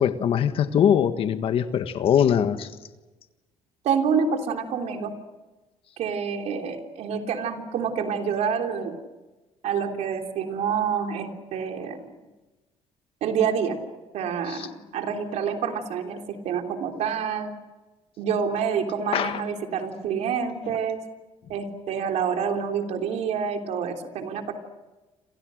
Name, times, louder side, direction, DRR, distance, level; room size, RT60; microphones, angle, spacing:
voice 1, 0.0-2.7 14.5-14.7 19.1-19.4 20.7-20.8, left 8 dB, 50° left, 10 dB, 1.5 m, -22 dB
voice 2, 3.8-5.1 6.0-8.9 9.6-12.0 13.2-13.8 14.1-16.2 16.5-17.5 18.2-21.0 21.5-24.5, right 6 dB, 70° right, 4 dB, 3.4 m, -27 dB
29.0 x 27.0 x 6.5 m, 1.2 s
cardioid pair, 150°, 12 cm